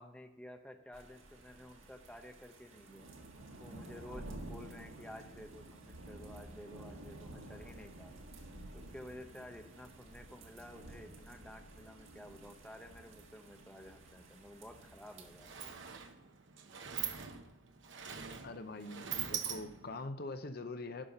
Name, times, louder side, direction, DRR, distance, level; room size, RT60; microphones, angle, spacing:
voice 1, 0.0-3.1 3.6-8.2 8.7-15.5, left 1 dB, 5° left, 4 dB, 0.8 m, -52 dB
sound 1, 0.9-16.0, right 1 dB, 85° right, 1.7 m, -52 dB
Sliding door, 14.7-14.9 15.1-20.1, right 8 dB, 65° right, 1.0 m, -43 dB
voice 2, 18.4-21.1, left 2 dB, 50° left, 9 dB, 0.8 m, -43 dB
11.5 x 5.5 x 6.6 m, 0.88 s
head